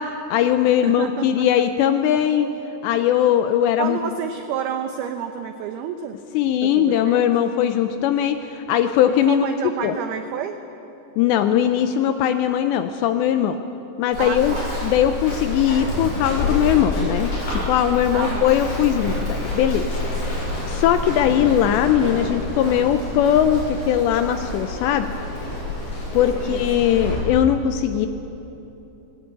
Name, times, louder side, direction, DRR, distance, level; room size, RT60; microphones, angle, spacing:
voice 1, 0.0-2.5 2.8-4.0 6.3-9.5 9.8-9.9 11.2-13.6 14.0-14.6 14.8-19.9 20.2-25.1 26.1-28.1, left 10 dB, 80° left, 9 dB, 2.6 m, -20 dB
voice 2, 0.8-1.5 3.8-6.2 6.6-7.3 9.1-10.6 14.2-14.7 18.1-18.6 26.3-27.1, right 8 dB, 90° right, 7 dB, 2.2 m, -30 dB
Run, 14.1-27.2, left 2 dB, 55° left, 9.3 m, -28 dB
19.5 x 17.5 x 8.9 m, 3.0 s
omnidirectional pair, 5.6 m